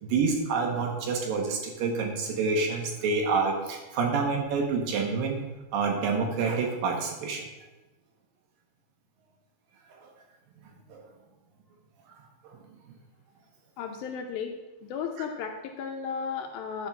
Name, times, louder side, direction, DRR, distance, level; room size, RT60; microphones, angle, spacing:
voice 1, 0.0-5.4 5.7-7.5 10.0-10.1 10.9-11.0 12.4-12.6, right 4 dB, 70° right, 2 dB, 2.5 m, -28 dB
voice 2, 13.8-14.5 14.8-16.9, left 6 dB, 80° left, 4 dB, 2.3 m, -34 dB
11.0 x 4.6 x 5.9 m, 1.1 s
omnidirectional pair, 4.7 m